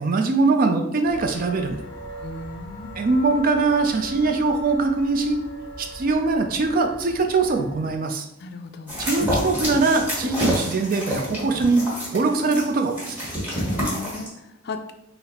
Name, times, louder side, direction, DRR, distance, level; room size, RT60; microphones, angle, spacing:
voice 1, 0.0-1.8 3.0-5.4 5.8-8.3 9.0-11.8 12.1-13.2, right 3 dB, 45° right, 5 dB, 0.4 m, -22 dB
sound 1, 1.0-8.0, equal, 20° left, 0.9 m, -40 dB
voice 2, 2.2-3.0 8.4-9.0 13.5-14.9, left 2 dB, 55° left, 7 dB, 0.4 m, -36 dB
sound 2, 8.9-14.3, equal, 10° right, 1.5 m, -28 dB
4.0 x 2.0 x 4.1 m, 0.81 s
head